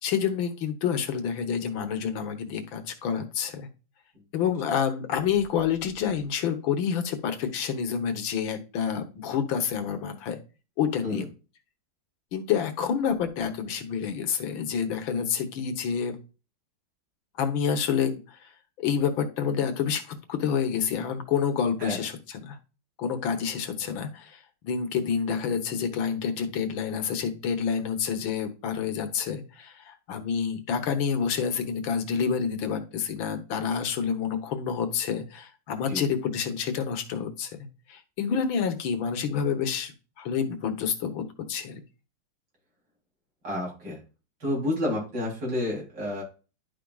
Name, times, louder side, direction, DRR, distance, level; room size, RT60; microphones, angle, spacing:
voice 1, 0.0-3.7 4.3-10.4 10.8-11.3 12.3-16.2 17.4-18.4 18.8-22.6 23.0-37.6 37.9-41.2 41.5-41.8, left 7 dB, 85° left, 7 dB, 1.8 m, -28 dB
voice 2, 43.4-44.0 44.4-46.2, left 1 dB, 75° right, -3 dB, 4.0 m, -30 dB
11.0 x 5.1 x 2.3 m, 0.33 s
omnidirectional pair, 2.1 m